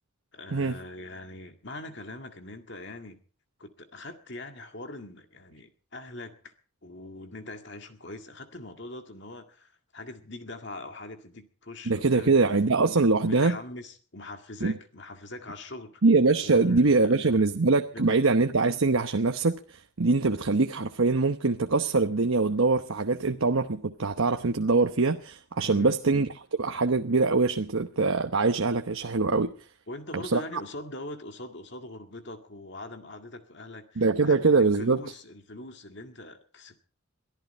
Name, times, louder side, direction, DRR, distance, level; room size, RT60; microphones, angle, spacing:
voice 1, 0.3-3.2 3.6-6.5 6.8-12.9 13.3-16.0 16.4-17.3 17.9-18.2 25.6-26.0 29.9-36.8, left 2 dB, 55° left, 2.0 m, -42 dB
voice 2, 11.9-13.6 14.6-14.7 16.0-29.5 30.1-30.4 34.0-35.0, right 3 dB, 75° right, 1.0 m, -23 dB
23.0 x 14.0 x 4.3 m
head